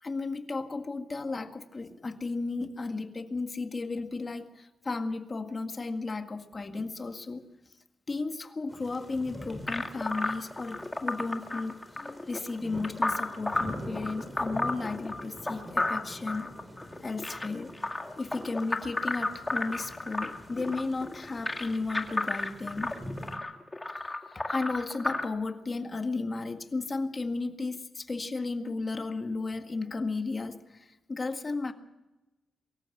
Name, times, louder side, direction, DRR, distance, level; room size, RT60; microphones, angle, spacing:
voice 1, 0.0-7.4 8.1-16.5 17.0-17.7 18.2-23.0 24.0-31.7, left 3 dB, 30° left, 6 dB, 1.8 m, -34 dB
sound 1, 8.7-23.4, equal, 10° right, 3.8 m, -46 dB
sound 2, 9.7-25.2, left 2 dB, 15° left, 2.0 m, -33 dB
24.0 x 14.0 x 8.1 m, 1.0 s
wide cardioid pair, 120°, 0 cm